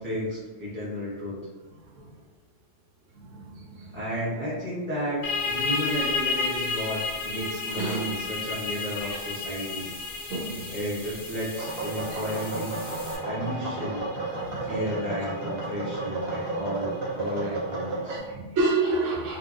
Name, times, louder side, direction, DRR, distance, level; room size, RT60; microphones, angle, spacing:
voice 1, 0.0-1.4 3.8-9.9 10.7-12.8 13.2-14.0 14.6-18.2, equal, 10° right, -9 dB, 0.6 m, -33 dB
voice 2, 3.2-4.0 7.3-7.4 7.7-8.0 9.1-9.2 10.3-10.7 12.1-12.2 14.4-14.7 18.1-19.4, right 2 dB, 90° right, -1 dB, 1.0 m, -29 dB
sound 1, 5.2-16.6, left 4 dB, 65° left, 0.7 m, -33 dB
sound 2, 5.2-13.2, left 2 dB, 25° left, 0.6 m, -43 dB
sound 3, 11.5-18.2, right 2 dB, 55° right, 0.9 m, -32 dB
2.7 x 2.6 x 2.4 m, 1.2 s
omnidirectional pair, 1.2 m